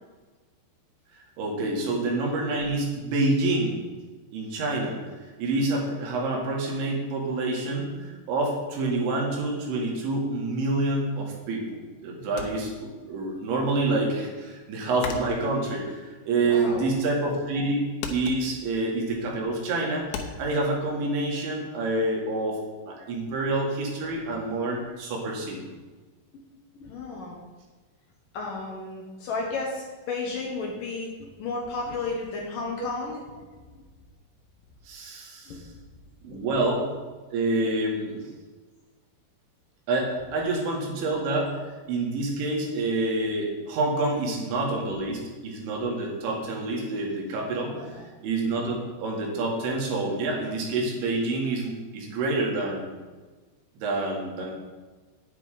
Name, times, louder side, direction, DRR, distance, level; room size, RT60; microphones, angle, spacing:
voice 1, 1.4-3.8 4.3-5.0 5.4-25.6 34.9-35.5 36.2-36.9 37.3-38.2 39.9-52.9 53.8-54.5, right 2 dB, 85° right, -1 dB, 4.4 m, -27 dB
sound 1, 12.4-13.4 13.7-17.0 17.3-17.7 18.0-20.6, left 5 dB, 85° left, 3.3 m, -38 dB
voice 2, 16.4-16.9 26.7-27.4 28.3-33.5 35.5-35.6 36.3-36.6 47.7-48.0, left 3 dB, 65° left, -1 dB, 2.4 m, -33 dB
9.9 x 9.5 x 5.0 m, 1.3 s
omnidirectional pair, 5.1 m